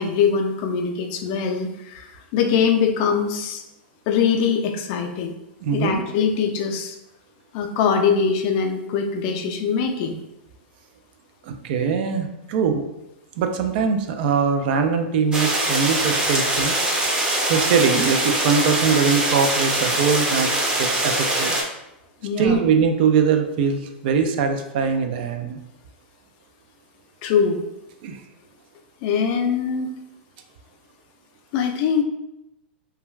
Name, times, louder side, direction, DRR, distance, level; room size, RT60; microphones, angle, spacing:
voice 1, 0.0-3.6 4.1-5.3 5.7-7.0 7.5-10.1 22.2-22.6 27.2-27.6 29.0-29.9 31.5-32.0, left 6 dB, 50° left, 5 dB, 0.4 m, -22 dB
voice 2, 5.6-5.9 11.5-12.8 13.4-17.0 17.5-21.6 22.4-25.6 28.0-28.2, right 6 dB, 60° right, 6 dB, 0.4 m, -22 dB
sound 1, 15.3-21.6, right 1 dB, 15° right, 0.6 m, -22 dB
2.2 x 2.2 x 3.1 m, 0.90 s
hypercardioid pair, 120°, 6 cm